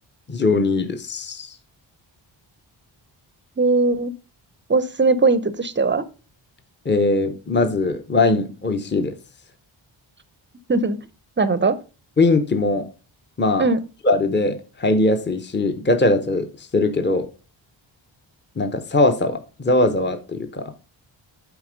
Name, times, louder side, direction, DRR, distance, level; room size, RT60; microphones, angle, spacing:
voice 1, 0.3-1.6 6.8-9.1 12.2-12.9 13.4-13.7 14.0-17.3 18.6-20.7, left 2 dB, 20° left, 7 dB, 0.8 m, -20 dB
voice 2, 3.6-4.1 4.7-6.0 10.7-11.0 11.4-11.8 13.6-13.8, right 3 dB, 25° right, 15 dB, 0.6 m, -19 dB
8.0 x 4.2 x 5.1 m, 0.33 s
wide cardioid pair, 110°, 48 cm